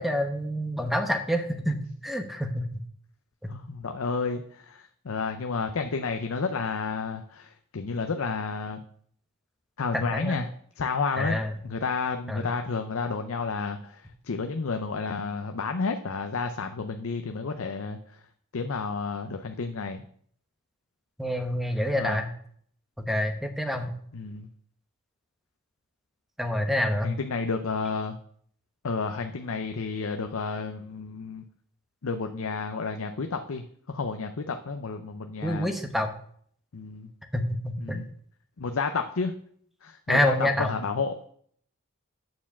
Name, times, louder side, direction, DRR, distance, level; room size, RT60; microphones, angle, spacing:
voice 1, 0.0-2.7 9.9-10.4 11.2-11.5 12.3-12.5 21.2-22.3 23.0-24.0 26.4-27.1 35.4-36.1 37.3-38.0 40.1-40.7, left 1 dB, ahead, 5 dB, 0.9 m, -27 dB
voice 2, 3.5-8.8 9.8-10.5 10.8-18.0 18.5-20.0 21.9-22.2 24.1-24.5 27.0-28.2 28.8-31.4 32.0-35.7 36.7-37.1 37.8-38.1 38.6-39.3 39.8-41.1, left 4 dB, 65° left, 6 dB, 0.6 m, -31 dB
9.3 x 4.8 x 7.2 m, 0.62 s
head